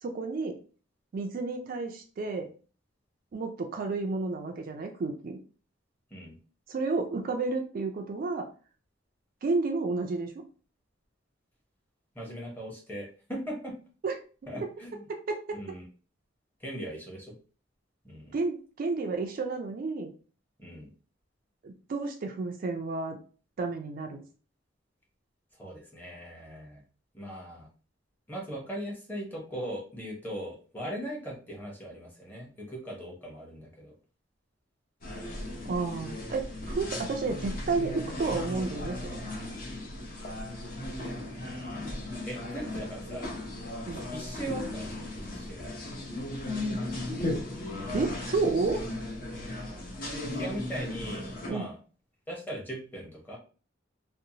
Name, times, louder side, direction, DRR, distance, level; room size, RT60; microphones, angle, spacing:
voice 1, 0.0-0.6 1.1-2.5 3.3-5.4 6.7-8.5 9.4-10.4 14.0-14.2 15.1-15.6 18.3-20.1 21.6-23.2 23.6-24.2 35.7-39.2 43.9-44.0 47.9-48.8 51.5-51.7, right 3 dB, 45° right, 3 dB, 0.3 m, -31 dB
voice 2, 12.1-13.7 14.5-15.1 15.5-15.8 16.6-17.3 18.0-18.4 20.6-20.9 25.6-26.8 27.1-27.7 28.3-33.9 41.3-43.3 44.1-45.7 50.2-51.8 52.3-53.4, equal, 10° left, -3 dB, 0.8 m, -39 dB
sound 1, 35.0-51.5, left 1 dB, 45° left, 0.7 m, -36 dB
2.6 x 2.0 x 2.7 m, 0.38 s
head